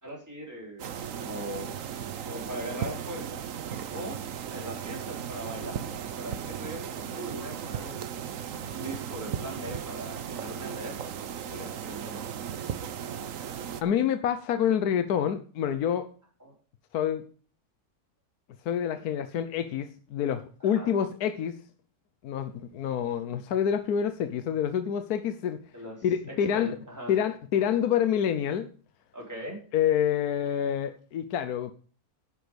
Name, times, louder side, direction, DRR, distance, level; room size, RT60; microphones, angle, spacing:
voice 1, 0.0-1.7 2.2-3.4 3.9-4.2 4.5-5.8 6.2-8.1 8.7-12.3 16.4-16.5 20.6-20.9 25.7-26.0 26.3-27.1 29.1-29.6, right 1 dB, 10° right, 4.3 m, -40 dB
sound 1, 0.8-13.8, right 8 dB, 60° right, 1.2 m, -36 dB
voice 2, 13.8-16.1 16.9-17.2 18.6-21.6 22.2-25.6 26.0-26.8 27.1-28.7 29.7-31.7, left 9 dB, 80° left, 1.3 m, -27 dB
10.5 x 9.3 x 5.1 m
omnidirectional pair, 1.6 m